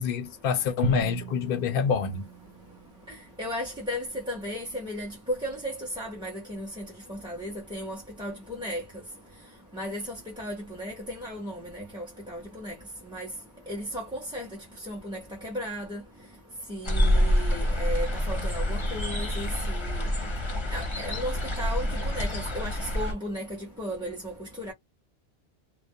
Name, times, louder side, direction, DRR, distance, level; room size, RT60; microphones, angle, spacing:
voice 1, 0.0-2.3, left 6 dB, 65° left, 0.7 m, -26 dB
Drum, 0.8-3.2, right 8 dB, 90° right, 0.8 m, -35 dB
voice 2, 3.4-5.1 5.4-6.8 7.1-8.8 9.7-10.0 10.4-12.7 13.1-13.3 13.7-14.5 14.9-16.0 16.7-20.1 20.7-24.3 24.6-24.7, equal, 5° right, 0.7 m, -35 dB
sound 1, 16.8-23.1, equal, 30° left, 0.7 m, -27 dB
2.3 x 2.1 x 2.6 m
omnidirectional pair, 1.0 m